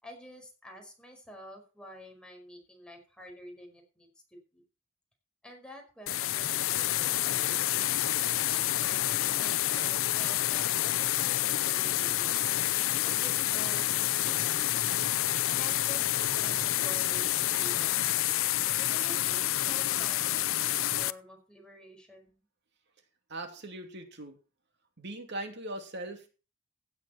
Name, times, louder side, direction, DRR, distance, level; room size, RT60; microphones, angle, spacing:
voice 1, 0.0-4.6 5.4-7.9 8.5-12.5 13.0-14.8 15.6-18.1 18.8-22.4, equal, 5° left, 1 dB, 4.9 m, -49 dB
sound 1, 6.1-21.1, left 14 dB, 75° left, 0.6 m, -28 dB
voice 2, 23.3-24.4 25.0-26.3, right 1 dB, 55° right, 5 dB, 2.9 m, -40 dB
16.0 x 8.8 x 4.4 m, 0.33 s
head